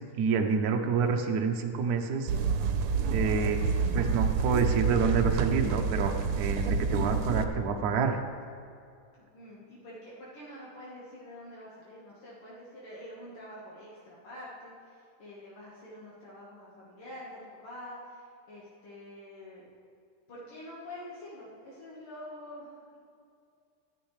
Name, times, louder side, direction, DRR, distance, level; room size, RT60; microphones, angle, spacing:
voice 1, 0.0-2.3 3.0-3.6 3.9-8.2, right 5 dB, 60° right, 4 dB, 1.1 m, -28 dB
sound 1, 2.3-7.4, right 5 dB, 85° right, 1.6 m, -28 dB
voice 2, 9.3-19.6 20.3-23.0, left 1 dB, 75° left, -6 dB, 2.4 m, -46 dB
12.0 x 10.0 x 3.2 m, 2.4 s
omnidirectional pair, 2.4 m